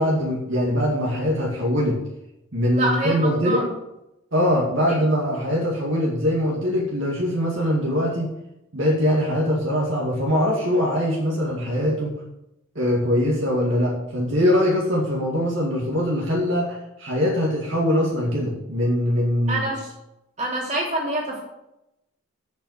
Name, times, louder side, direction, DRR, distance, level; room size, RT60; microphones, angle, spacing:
voice 1, 0.0-2.0 2.5-3.6 4.3-8.3 8.7-12.1 12.8-19.6, equal, 60° right, -3 dB, 2.2 m, -22 dB
voice 2, 2.7-3.7 4.9-5.0 19.5-19.9 20.4-21.4, right 2 dB, 35° right, -3 dB, 3.3 m, -26 dB
7.9 x 7.1 x 8.2 m, 0.87 s
head